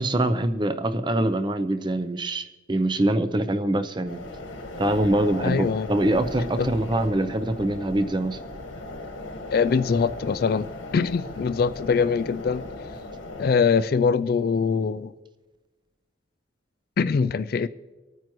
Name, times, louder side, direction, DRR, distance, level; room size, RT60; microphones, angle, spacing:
voice 1, 0.0-4.3 4.8-8.4, right 1 dB, 25° right, 0.6 m, -24 dB
sound 1, 4.0-13.5, left 2 dB, 90° left, 1.6 m, -37 dB
voice 2, 5.4-5.9 6.6-6.7 9.5-10.7 10.9-12.6 13.4-15.1 17.0-17.7, left 5 dB, 50° left, 0.3 m, -23 dB
25.5 x 9.3 x 3.1 m
head